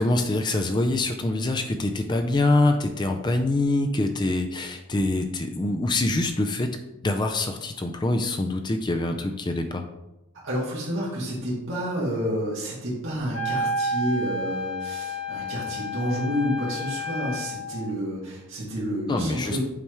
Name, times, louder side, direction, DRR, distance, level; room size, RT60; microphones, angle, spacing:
voice 1, 0.0-6.7 7.0-9.8 19.1-19.6, left 2 dB, 20° left, 5 dB, 0.4 m, -25 dB
voice 2, 10.4-19.6, equal, 55° right, -7 dB, 1.9 m, -29 dB
Wind instrument woodwind instrument, 13.3-17.7, left 1 dB, 55° left, 1.6 m, -30 dB
7.1 x 3.4 x 4.5 m, 0.95 s
head